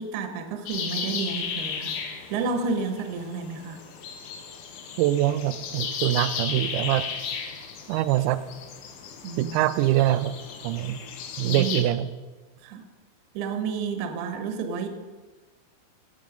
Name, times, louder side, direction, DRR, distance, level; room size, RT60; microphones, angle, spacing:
voice 1, 0.0-3.8 9.2-9.7 11.4-11.7 12.6-12.9 13.3-14.9, right 5 dB, 70° right, 6 dB, 2.6 m, -31 dB
sound 1, 0.7-11.8, left 6 dB, 80° left, 2.1 m, -35 dB
voice 2, 5.0-7.0 7.9-8.4 9.4-10.4 10.6-11.0 11.4-12.1, right 14 dB, 90° right, 12 dB, 3.3 m, -24 dB
17.5 x 6.5 x 5.2 m, 1.3 s
omnidirectional pair, 5.9 m